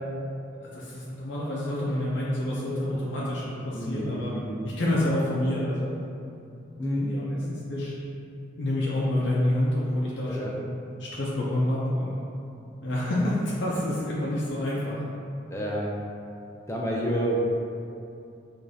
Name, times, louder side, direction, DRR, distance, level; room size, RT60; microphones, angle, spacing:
voice 1, 0.6-4.4 4.6-6.0 6.9-7.9 8.6-10.6 11.0-12.1 12.8-15.0 17.1-17.2, left 1 dB, 65° left, -7 dB, 0.5 m, -28 dB
voice 2, 3.7-4.6 6.8-7.1 10.3-10.5 15.5-15.9 16.7-17.4, right 1 dB, 15° left, -3 dB, 0.4 m, -29 dB
4.8 x 2.5 x 2.7 m, 2.6 s
head